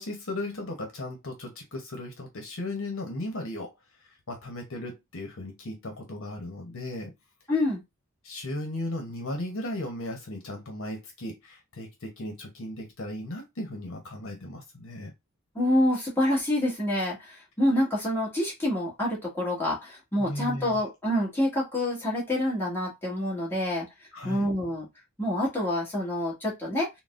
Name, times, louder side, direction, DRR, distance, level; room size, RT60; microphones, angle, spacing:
voice 1, 0.0-3.7 4.3-7.1 8.2-15.1 20.2-20.8 24.1-24.5, left 1 dB, 65° left, 1.0 m, -36 dB
voice 2, 7.5-7.8 15.5-23.9 24.2-24.9 25.2-26.9, left 1 dB, 10° left, 1.6 m, -27 dB
3.9 x 2.2 x 2.5 m
head